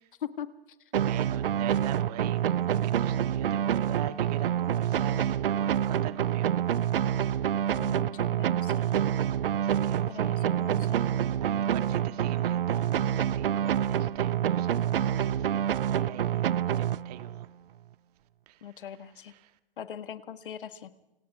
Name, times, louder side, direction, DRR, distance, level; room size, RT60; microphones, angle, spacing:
sound 1, 0.9-17.5, right 10 dB, 65° right, 0.7 m, -27 dB
voice 1, 1.0-6.6 7.1-7.6 9.6-11.1 11.4-17.5 18.5-18.9 19.3-19.6, right 12 dB, 40° right, 2.0 m, -43 dB
voice 2, 7.7-8.9 10.1-11.0 18.6-19.3 19.8-20.9, left 9 dB, 60° left, 1.7 m, -41 dB
29.0 x 28.5 x 3.6 m
figure-of-eight pair, 120°, 30 cm